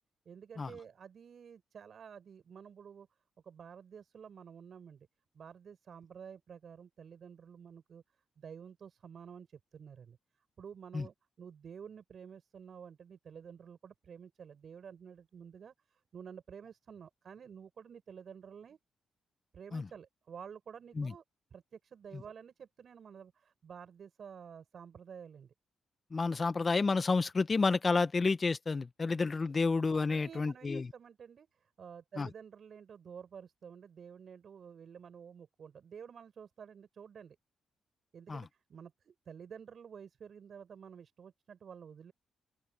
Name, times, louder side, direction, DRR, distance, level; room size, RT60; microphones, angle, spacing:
voice 1, 0.3-3.1 3.4-5.1 5.3-8.0 8.4-10.2 10.6-18.8 19.5-21.2 21.5-25.5 30.1-37.4 38.1-42.1, right 7 dB, 55° right, 7.6 m, -51 dB
voice 2, 26.1-30.9 32.2-32.3 38.3-38.4, left 4 dB, 35° left, 1.2 m, -30 dB
open air
cardioid pair, 95°, 0 cm